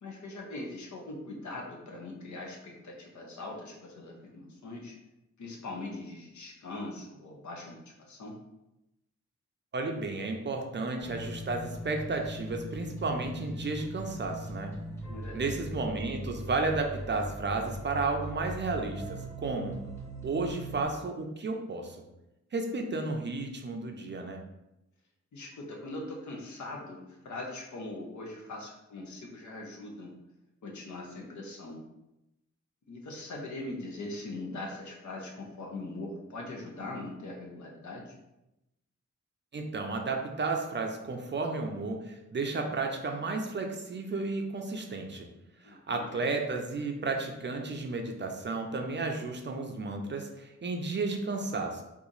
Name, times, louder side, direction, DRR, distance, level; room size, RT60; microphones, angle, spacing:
voice 1, 0.0-5.0 5.4-8.3 15.1-15.6 25.3-30.1 30.6-31.8 32.9-38.1 45.6-46.3, left 2 dB, 75° left, 0 dB, 0.8 m, -41 dB
voice 2, 9.7-14.7 15.3-19.8 20.2-22.1 22.5-24.4 39.5-45.3 45.6-51.8, right 3 dB, 40° right, 3 dB, 0.5 m, -33 dB
sound 1, 11.0-20.9, right 1 dB, 10° left, 1.2 m, -40 dB
2.9 x 2.4 x 3.8 m, 0.92 s
wide cardioid pair, 110°, 30 cm